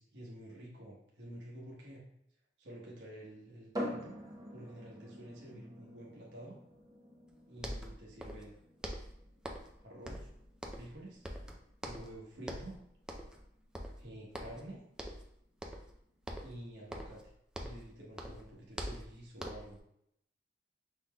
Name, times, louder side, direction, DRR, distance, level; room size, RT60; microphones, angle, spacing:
voice 1, 0.0-2.0 2.6-4.2 4.5-6.6 7.5-8.5 9.8-10.3 10.7-11.2 11.8-12.8 14.0-14.8 16.4-17.2 17.6-19.8, right 1 dB, 70° right, -4 dB, 1.1 m, -49 dB
sound 1, 3.7-17.2, equal, 20° right, 0.7 m, -48 dB
sound 2, 7.3-7.4 7.6-8.5 8.8-9.8 10.1-11.0 11.2-12.2 12.4-12.8 13.1-13.4 13.7-14.7 15.0-15.3 15.6-16.0 16.3-17.9 18.2-19.8, equal, 5° right, 0.4 m, -44 dB
5.8 x 3.8 x 2.2 m, 0.76 s
head